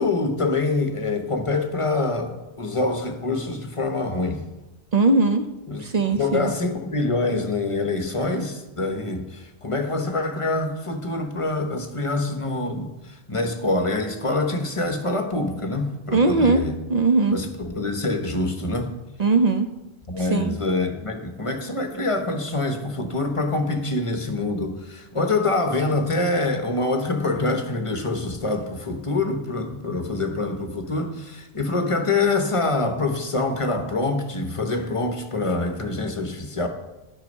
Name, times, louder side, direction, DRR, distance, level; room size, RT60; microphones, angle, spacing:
voice 1, 0.0-4.4 5.7-5.8 6.2-16.8 17.3-18.9 20.1-36.7, left 2 dB, 30° left, 6 dB, 0.9 m, -25 dB
voice 2, 4.9-5.5 5.8-6.5 16.1-16.6 16.9-17.4 19.2-19.7 20.2-20.5, right 3 dB, 45° right, 7 dB, 0.6 m, -20 dB
11.0 x 6.4 x 5.3 m, 1.0 s
omnidirectional pair, 1.1 m